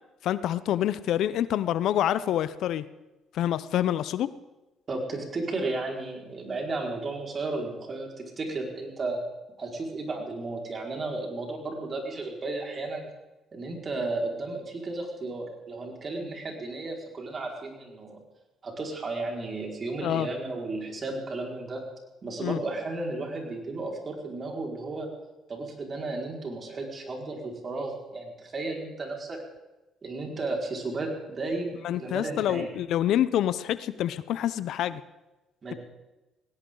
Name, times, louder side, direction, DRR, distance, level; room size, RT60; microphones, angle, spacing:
voice 1, 0.2-2.8 3.3-4.3 20.0-20.3 22.4-22.6 31.8-35.0, left 11 dB, 75° left, 16 dB, 0.7 m, -27 dB
voice 2, 4.9-9.2 9.6-13.0 13.5-18.2 18.6-21.8 22.2-25.1 25.5-29.4 30.0-32.7 35.6-35.8, right 2 dB, 45° right, 0 dB, 5.1 m, -34 dB
20.5 x 17.5 x 3.9 m, 1.0 s
supercardioid pair, 65°, 0 cm